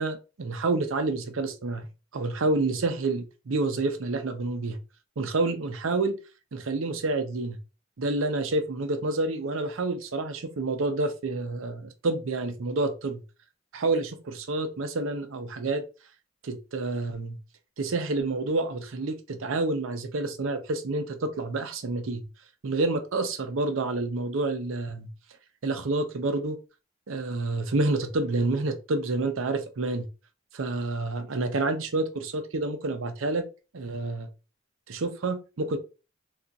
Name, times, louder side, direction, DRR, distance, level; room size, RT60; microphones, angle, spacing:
voice 1, 0.0-1.8 2.1-4.8 5.2-6.2 6.5-7.6 8.0-13.2 13.7-15.8 16.4-17.4 17.8-22.2 22.6-25.1 25.6-26.6 27.1-30.1 30.5-33.5 33.7-34.3 34.9-35.8, right 2 dB, 85° right, 0.6 m, -28 dB
3.8 x 2.4 x 2.3 m
head